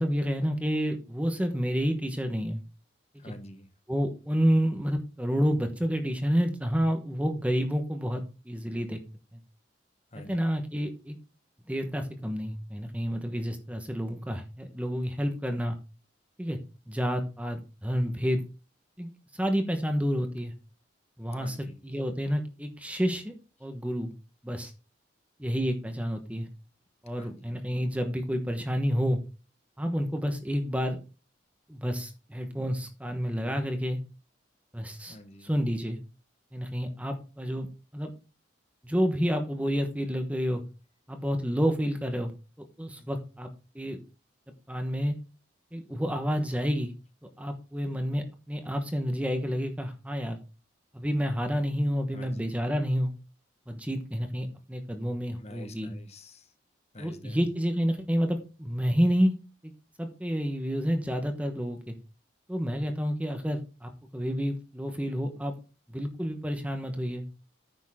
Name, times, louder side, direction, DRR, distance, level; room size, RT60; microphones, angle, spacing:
voice 1, 0.0-2.6 3.1-3.2 3.9-9.0 10.2-11.2 11.7-15.7 16.4-16.6 16.9-18.4 19.0-20.5 21.2-23.3 23.6-24.1 24.4-24.7 25.4-26.5 27.0-29.2 29.8-31.0 31.7-34.0 34.7-35.2 35.4-36.0 36.5-37.7 37.9-38.1 38.8-40.6 41.1-42.3 42.6-43.5 43.7-44.0 44.7-45.1 45.7-46.9 47.4-50.4 50.9-53.1 53.7-55.9 57.0-59.3 60.0-61.9 62.5-65.5 65.9-67.3, equal, 5° right, 5 dB, 1.1 m, -29 dB
voice 2, 3.2-3.7 10.1-10.5 21.3-21.8 27.2-27.6 35.1-35.5 43.0-43.2 51.8-51.9 52.1-52.5 55.4-56.5 56.9-57.4, left 1 dB, 35° left, 8 dB, 1.3 m, -48 dB
9.9 x 7.2 x 3.6 m, 0.32 s
head